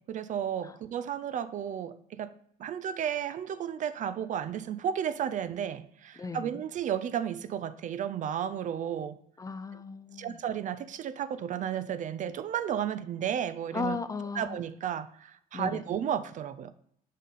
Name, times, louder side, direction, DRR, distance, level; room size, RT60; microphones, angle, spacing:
voice 1, 0.0-2.3 2.6-9.2 10.1-14.0 14.4-16.7, right 9 dB, 50° right, 0.4 m, -33 dB
voice 2, 6.2-6.6 9.4-10.4 13.7-14.6 15.5-15.8, left 4 dB, 20° left, 0.5 m, -36 dB
6.4 x 4.1 x 5.3 m
cardioid pair, 110°, 17 cm